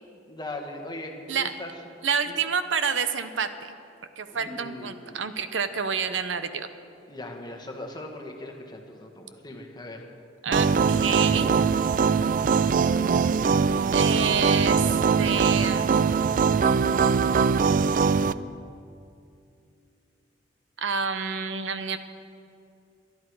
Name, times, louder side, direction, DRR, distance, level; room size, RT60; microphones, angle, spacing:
voice 1, 0.0-1.7 2.3-2.4 4.3-5.2 7.1-10.1, left 2 dB, 25° left, 3 dB, 1.5 m, -39 dB
voice 2, 2.0-3.5 4.2-6.7 10.4-11.6 13.9-16.0 20.8-22.0, right 6 dB, 85° right, 10 dB, 0.8 m, -28 dB
sound 1, 10.5-18.3, right 5 dB, 45° right, 0.3 m, -22 dB
22.5 x 10.5 x 4.7 m, 2.5 s
head